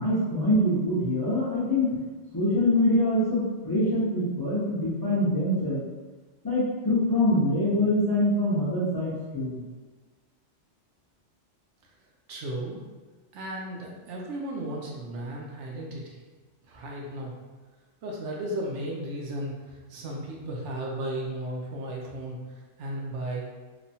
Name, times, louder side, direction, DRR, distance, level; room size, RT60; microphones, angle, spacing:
voice 1, 0.0-2.0 2.3-5.8 6.4-9.6, left 1 dB, 25° left, -10 dB, 0.5 m, -24 dB
voice 2, 12.3-12.8 13.3-16.2 16.7-17.3 18.0-23.5, right 1 dB, 75° right, -2 dB, 0.9 m, -35 dB
3.0 x 2.2 x 2.7 m, 1.3 s
omnidirectional pair, 1.3 m